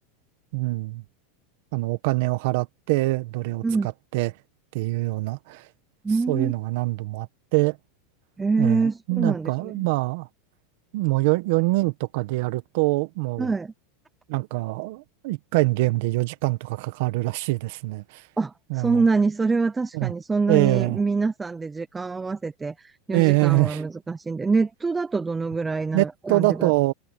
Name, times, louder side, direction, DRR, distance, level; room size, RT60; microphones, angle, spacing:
voice 1, 0.5-1.0 1.7-3.6 4.1-4.3 4.7-5.7 6.3-7.8 8.6-10.3 10.9-13.5 14.3-18.2 18.7-19.0 19.9-20.1 20.5-21.0 23.1-23.8 25.9-26.9, right 22 dB, 60° right, 1.5 m, -24 dB
voice 2, 6.0-6.5 8.4-9.9 13.4-13.7 18.4-26.7, right 4 dB, 10° right, 0.5 m, -25 dB
supercardioid pair, 155°, 0 cm